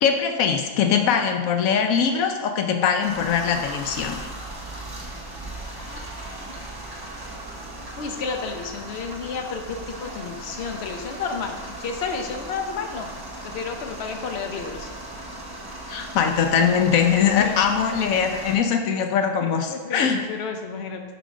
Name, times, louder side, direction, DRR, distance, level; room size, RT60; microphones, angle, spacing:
voice 1, 0.0-4.3 15.9-20.2, left 7 dB, 85° left, 6 dB, 1.1 m, -22 dB
sound 1, 3.0-18.6, right 1 dB, 20° right, 0.9 m, -37 dB
voice 2, 5.7-6.0 6.3-6.7 8.0-13.1 13.4-14.9 16.5-16.8 17.4-17.6 19.4-21.0, left 5 dB, 55° left, 4 dB, 1.0 m, -32 dB
9.2 x 4.0 x 4.9 m, 1.3 s
omnidirectional pair, 1.4 m